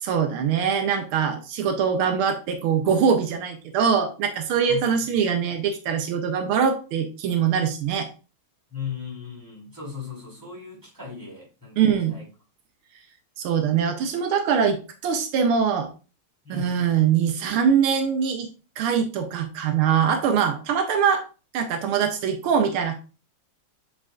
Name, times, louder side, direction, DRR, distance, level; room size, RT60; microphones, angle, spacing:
voice 1, 0.0-8.1 11.8-12.2 13.4-15.9 16.5-18.5 18.8-21.2 21.5-23.0, right 7 dB, 85° right, 6 dB, 1.6 m, -23 dB
voice 2, 8.7-12.2 16.4-16.9, left 6 dB, 10° right, -6 dB, 3.7 m, -37 dB
7.6 x 5.3 x 2.4 m, 0.33 s
omnidirectional pair, 2.4 m